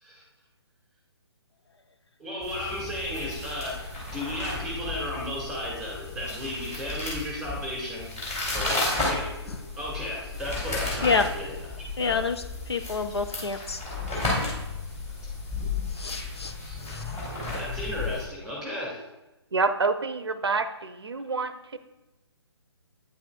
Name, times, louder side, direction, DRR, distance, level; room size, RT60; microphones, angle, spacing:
voice 1, 2.2-3.8 4.1-8.1 8.5-9.3 9.8-11.5 12.0-12.2 14.1-14.2 16.4-16.8 17.5-19.0, left 1 dB, ahead, -2 dB, 2.3 m, -34 dB
sound 1, 2.4-18.2, left 3 dB, 15° left, 2.8 m, -33 dB
voice 2, 12.0-13.8 15.9-16.5 16.8-17.1, left 5 dB, 65° left, 7 dB, 0.6 m, -28 dB
voice 3, 19.5-21.8, right 4 dB, 65° right, 11 dB, 0.6 m, -27 dB
9.0 x 8.0 x 2.3 m, 1.0 s
figure-of-eight pair, 140°, 14 cm